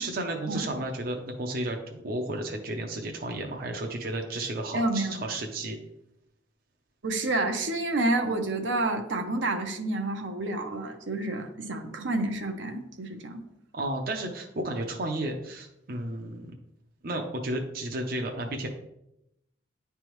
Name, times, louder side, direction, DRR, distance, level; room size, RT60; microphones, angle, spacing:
voice 1, 0.0-5.8 13.7-16.5 17.0-18.7, right 1 dB, 50° right, 2 dB, 0.6 m, -33 dB
voice 2, 4.7-5.2 7.0-13.4, right 2 dB, 80° right, 4 dB, 0.8 m, -29 dB
10.0 x 3.4 x 3.1 m, 0.83 s
head